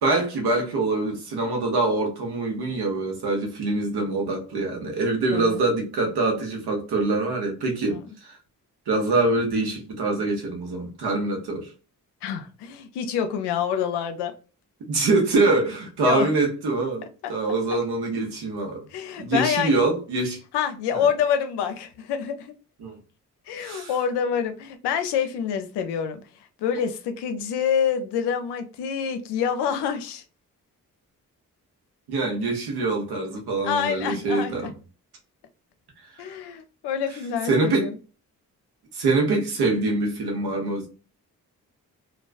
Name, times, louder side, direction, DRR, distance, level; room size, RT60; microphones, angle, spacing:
voice 1, 0.0-8.4 8.9-11.7 14.9-18.9 19.2-20.4 20.9-21.1 22.8-23.0 23.6-23.9 32.1-34.7 36.2-36.3 37.4-37.9 38.9-40.9, right 3 dB, 75° right, 0.9 m, -24 dB
voice 2, 5.3-5.6 7.9-8.0 12.2-14.3 16.0-16.3 18.9-19.8 20.5-22.5 23.5-26.2 26.6-30.2 33.6-34.7 36.2-37.9, left 7 dB, 85° left, 0.5 m, -27 dB
2.3 x 2.3 x 2.3 m
supercardioid pair, 40°, 39 cm